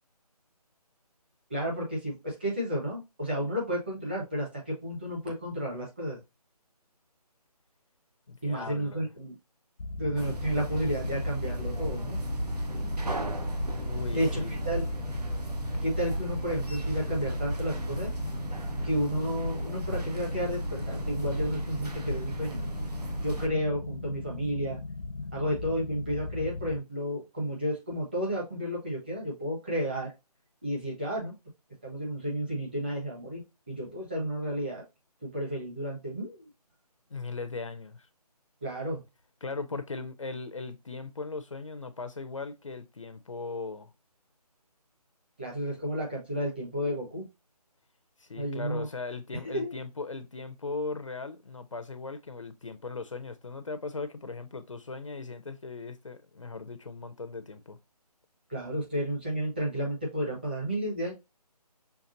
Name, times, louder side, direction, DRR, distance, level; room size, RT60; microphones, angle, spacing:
voice 1, 1.5-6.2 8.4-9.3 9.9-12.2 14.1-14.9 15.8-18.1 18.8-22.7 23.2-24.8 25.3-30.1 30.6-31.3 31.8-33.4 33.7-34.8 35.2-36.5 38.6-39.0 45.4-47.2 48.4-48.9 49.5-49.7 58.5-61.1, equal, 15° right, 1.1 m, -32 dB
voice 2, 8.3-9.1 13.8-14.5 37.1-38.1 39.4-43.9 48.2-57.8, left 3 dB, 50° left, 0.6 m, -38 dB
sound 1, 9.8-26.8, left 3 dB, 85° left, 0.9 m, -38 dB
sound 2, 10.2-23.5, right 1 dB, 75° right, 1.2 m, -34 dB
5.8 x 3.5 x 2.6 m
hypercardioid pair, 180°, 20 cm